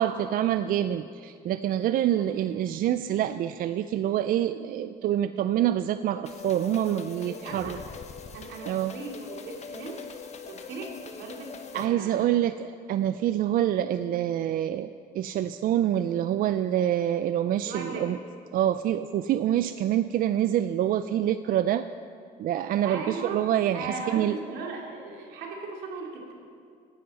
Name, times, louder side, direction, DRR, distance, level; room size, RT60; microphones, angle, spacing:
voice 1, 0.0-7.8 8.7-8.9 11.7-18.2 18.5-21.9 22.4-24.4, right 11 dB, 55° right, 11 dB, 0.4 m, -26 dB
sound 1, 6.2-11.9, left 5 dB, 40° left, 1.1 m, -43 dB
voice 2, 7.1-7.8 8.3-10.0 10.5-12.2 17.6-18.1 22.8-23.4 23.7-26.3, right 3 dB, 85° right, 0 dB, 2.4 m, -38 dB
17.5 x 11.0 x 4.1 m, 2.3 s
cardioid pair, 110°, 17 cm